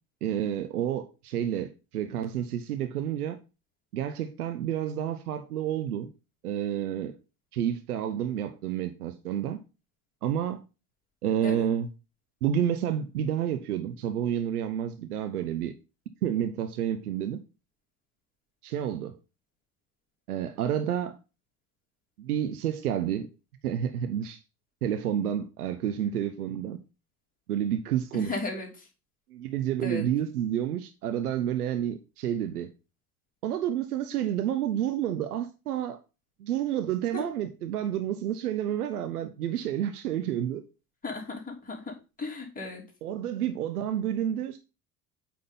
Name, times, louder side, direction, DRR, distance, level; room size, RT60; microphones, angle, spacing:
voice 1, 0.2-3.4 3.9-6.1 6.4-7.1 7.5-9.6 10.2-10.6 11.2-11.9 12.4-15.7 16.2-17.4 18.6-19.2 20.3-21.2 22.2-23.3 23.6-24.4 24.8-26.8 27.5-28.4 29.3-32.7 33.4-36.0 36.4-40.6 43.0-44.6, right 10 dB, 75° right, 0.8 m, -29 dB
voice 2, 28.1-28.7 29.8-30.1 37.1-37.2 41.0-41.3 41.6-41.9 42.2-42.8, left 3 dB, 20° left, 3.2 m, -35 dB
8.6 x 3.8 x 5.4 m
figure-of-eight pair, 70°, 45 cm